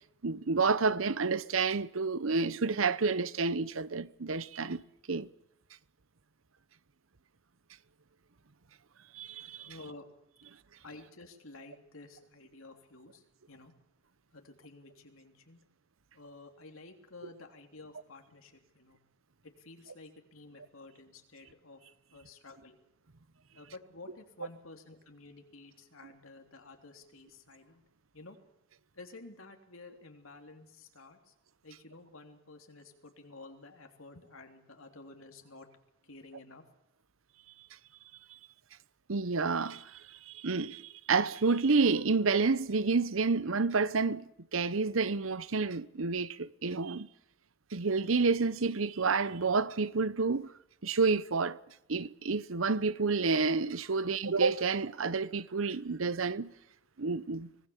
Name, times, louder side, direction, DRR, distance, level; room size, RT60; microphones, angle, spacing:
voice 1, 0.2-4.8 5.1-5.3 9.1-9.7 39.1-47.1 47.7-50.5 50.8-51.6 51.9-56.5 57.0-57.5, right 4 dB, 85° right, 0.9 m, -29 dB
voice 2, 9.6-10.0 10.8-13.7 14.3-15.6 16.1-19.0 19.4-21.8 22.1-22.8 23.5-27.8 28.1-28.4 28.9-31.3 31.6-35.7 36.0-36.6, left 3 dB, 90° left, 3.4 m, -52 dB
25.0 x 19.0 x 7.3 m
head